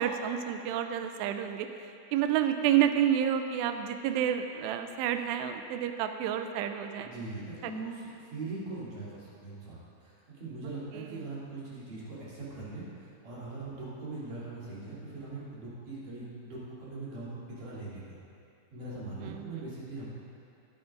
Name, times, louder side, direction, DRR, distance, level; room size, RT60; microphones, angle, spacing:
voice 1, 0.0-1.7 2.1-7.1 7.6-7.7 10.9-11.1 19.2-19.5, right 10 dB, 90° right, 7 dB, 2.4 m, -29 dB
voice 2, 7.0-18.2 18.7-20.1, right 3 dB, 45° right, -9 dB, 4.5 m, -41 dB
24.0 x 8.7 x 2.6 m, 2.5 s
omnidirectional pair, 5.3 m